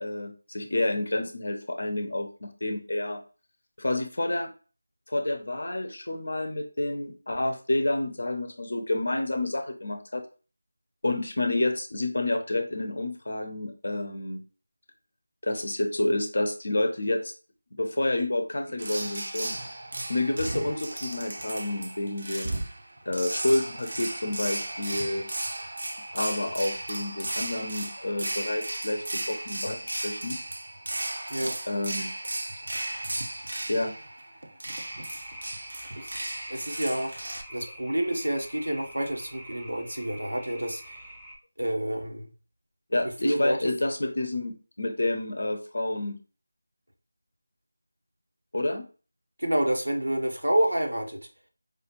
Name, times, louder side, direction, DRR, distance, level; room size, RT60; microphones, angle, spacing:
voice 1, 0.0-3.2 3.8-4.5 5.1-10.2 11.0-14.4 15.4-17.3 17.7-19.6 20.1-22.7 23.1-25.3 26.1-30.4 31.4-32.1 33.7-34.0 42.9-46.2 48.5-48.9, left 2 dB, 60° left, 7 dB, 0.7 m, -29 dB
sound 1, 18.8-37.4, right 1 dB, 60° right, 0.7 m, -35 dB
sound 2, 34.7-41.4, equal, ahead, 0.6 m, -46 dB
voice 2, 36.5-37.1 37.5-41.0 41.6-42.3 43.2-43.7 49.4-51.2, right 1 dB, 85° right, 3 dB, 1.1 m, -28 dB
4.7 x 2.4 x 2.9 m, 0.36 s
figure-of-eight pair, 165°, 0 cm